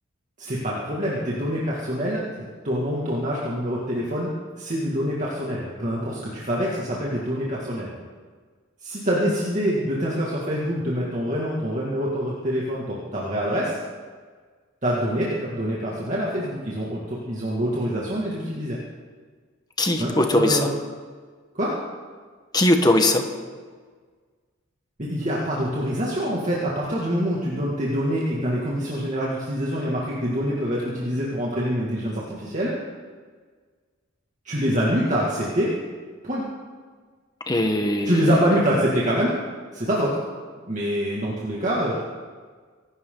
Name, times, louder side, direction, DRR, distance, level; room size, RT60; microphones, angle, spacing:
voice 1, 0.4-4.3 4.6-7.9 8.8-13.7 14.8-18.8 20.0-20.8 21.5-21.8 25.0-32.7 34.4-35.7 36.2-36.4 38.0-39.4 39.7-40.2 40.7-42.0, equal, 35° right, -5 dB, 2.3 m, -25 dB
voice 2, 19.8-20.7 22.5-23.3 37.5-38.3, left 1 dB, 20° left, 5 dB, 1.4 m, -20 dB
24.5 x 12.5 x 4.0 m, 1.6 s
head